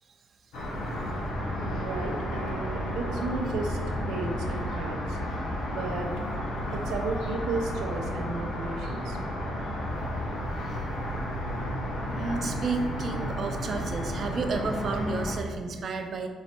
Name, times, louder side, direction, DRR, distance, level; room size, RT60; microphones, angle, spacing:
sound 1, 0.5-15.3, equal, 85° left, 1.5 m, -32 dB
voice 1, 1.6-5.2 5.7-6.1 6.7-9.2, right 3 dB, 90° right, 3 dB, 0.8 m, -34 dB
voice 2, 12.1-16.3, right 3 dB, 55° right, 5 dB, 0.7 m, -32 dB
5.4 x 4.1 x 4.5 m, 1.5 s
cardioid pair, 90°, 0 cm